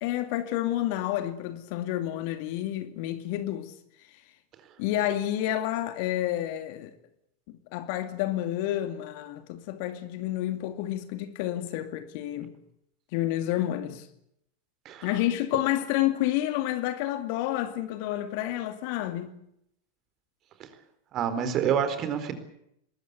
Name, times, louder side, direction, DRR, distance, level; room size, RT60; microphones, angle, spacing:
voice 1, 0.0-3.7 4.8-6.9 7.7-12.5 13.1-14.1 15.0-19.3, left 13 dB, 45° left, 2.3 m, -29 dB
voice 2, 21.1-22.3, right 8 dB, 35° right, 4.3 m, -27 dB
23.5 x 21.0 x 8.3 m
figure-of-eight pair, 90°, 0 cm